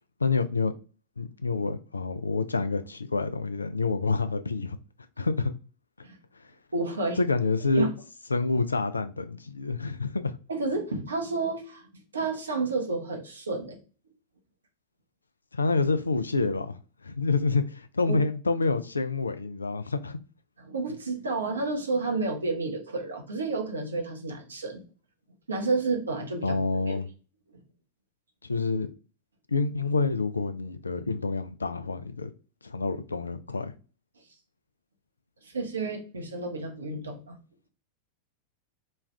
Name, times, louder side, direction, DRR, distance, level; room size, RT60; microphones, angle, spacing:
voice 1, 0.2-0.7 1.2-4.8 5.2-5.5 7.2-7.9 8.3-10.3 15.5-16.8 17.0-20.2 26.4-27.1 28.5-28.9 29.5-32.3 32.6-33.7, left 3 dB, 75° left, 0.3 m, -27 dB
voice 2, 6.7-7.2 7.7-7.9 10.5-13.8 18.1-18.2 20.6-24.8 25.5-26.6 26.9-27.0 35.4-37.3, right 3 dB, 75° right, 0.9 m, -30 dB
3.2 x 2.4 x 3.2 m
figure-of-eight pair, 90°, 0 cm